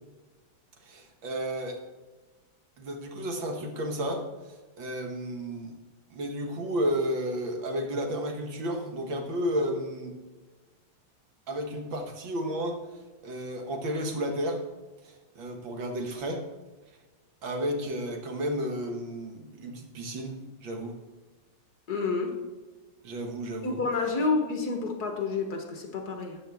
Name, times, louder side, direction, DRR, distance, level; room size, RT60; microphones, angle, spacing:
voice 1, 0.8-1.8 2.8-5.8 6.1-10.1 11.5-12.8 13.2-14.6 15.0-16.5 17.4-20.9 23.0-23.8, equal, 70° right, 3 dB, 2.1 m, -32 dB
voice 2, 21.9-22.4 23.6-26.4, left 4 dB, 55° left, 3 dB, 1.6 m, -29 dB
13.0 x 8.2 x 3.5 m, 1.2 s
omnidirectional pair, 2.2 m